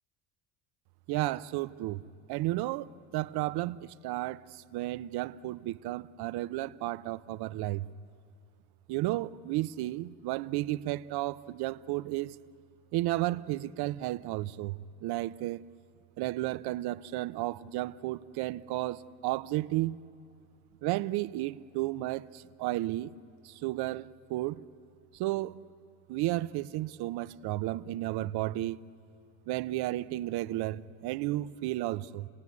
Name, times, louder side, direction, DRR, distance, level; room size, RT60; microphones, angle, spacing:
voice 1, 1.1-2.0 2.3-7.9 8.9-12.4 12.9-15.6 16.2-20.0 20.8-23.1 23.4-24.6 25.1-25.6 26.1-28.8 29.5-32.3, right 16 dB, 60° right, 0.7 m, -33 dB
29.0 x 18.0 x 9.6 m
supercardioid pair, 100°, 44 cm